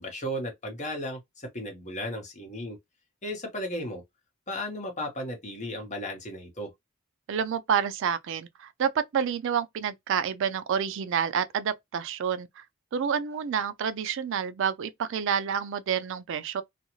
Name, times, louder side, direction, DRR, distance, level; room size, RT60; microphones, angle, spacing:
voice 1, 0.0-2.8 3.2-4.0 4.5-6.7, equal, 35° left, 1.1 m, -35 dB
voice 2, 7.3-12.6 12.9-16.6, right 7 dB, 65° right, 0.4 m, -28 dB
2.5 x 2.3 x 2.9 m
head